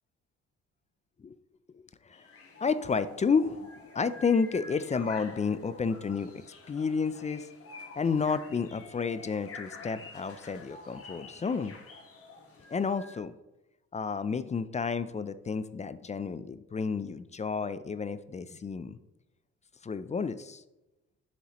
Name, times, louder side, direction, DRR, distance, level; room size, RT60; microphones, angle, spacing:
sound 1, 2.1-13.2, left 3 dB, 50° left, 1.5 m, -48 dB
voice 1, 2.6-3.7 3.9-6.3 6.7-7.4 8.0-11.7 12.7-13.3 13.9-19.0 19.8-20.6, left 5 dB, 25° left, 14 dB, 0.4 m, -30 dB
7.3 x 7.2 x 3.0 m, 0.97 s
cardioid pair, 90°, 30 cm